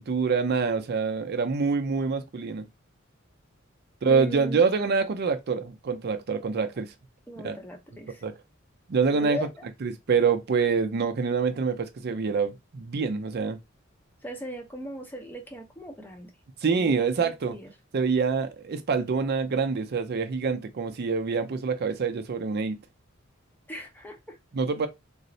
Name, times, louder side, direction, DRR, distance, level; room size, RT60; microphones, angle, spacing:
voice 1, 0.0-2.7 4.0-6.9 7.4-7.5 8.2-8.3 8.9-9.4 9.8-13.6 16.6-17.5 17.9-22.8 24.5-24.9, right 5 dB, 50° right, 0.5 m, -26 dB
voice 2, 4.1-4.7 7.3-8.2 9.1-9.7 14.2-16.3 16.7-17.7 23.7-24.4, equal, 10° left, 0.7 m, -38 dB
3.9 x 2.1 x 2.6 m
head